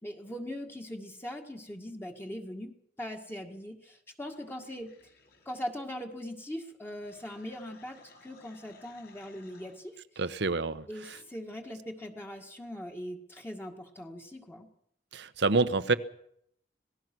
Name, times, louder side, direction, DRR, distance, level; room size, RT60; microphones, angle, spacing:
voice 1, 0.0-4.9 5.5-10.0 10.9-14.7, equal, 15° left, 2 dB, 1.9 m, -41 dB
sound 1, 4.3-5.5 7.0-9.8 11.1-11.2, left 3 dB, 65° left, 5.8 m, -59 dB
voice 2, 10.2-11.2 15.1-15.9, right 3 dB, 70° right, 13 dB, 1.1 m, -28 dB
26.0 x 18.5 x 6.2 m, 0.73 s
head